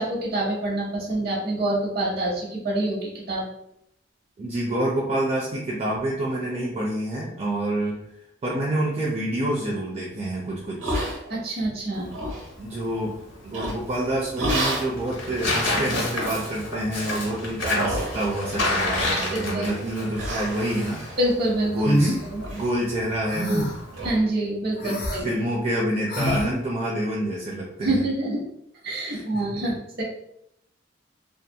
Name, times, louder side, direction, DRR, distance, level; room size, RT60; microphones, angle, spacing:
voice 1, 0.0-3.5 11.3-12.1 19.3-19.7 21.2-21.8 22.2-22.4 24.0-25.3 27.8-28.4 28.8-30.0, right 1 dB, 55° right, -2 dB, 0.8 m, -26 dB
voice 2, 4.4-8.1 8.4-11.0 12.6-13.2 13.4-21.0 21.7-22.1 22.5-23.8 24.8-28.0 29.1-29.6, right 1 dB, 35° right, -4 dB, 0.4 m, -27 dB
sound 1, 10.8-11.6 12.0-12.5 13.5-13.9 14.4-14.9 15.5-15.6 16.2-16.6 17.0-17.3 17.8-18.5 18.8-19.4 19.8-19.9 20.2-22.0 22.4-22.7 22.9-23.0 23.5-23.6 23.9-24.1, right 1 dB, 75° right, 1.0 m, -31 dB
Tearing, 11.9-24.2, left 1 dB, 80° left, 0.9 m, -30 dB
sound 2, 21.8-22.2 23.3-23.8 24.8-25.2 26.1-26.5, equal, 55° left, 0.5 m, -24 dB
2.7 x 2.4 x 2.2 m, 0.76 s
head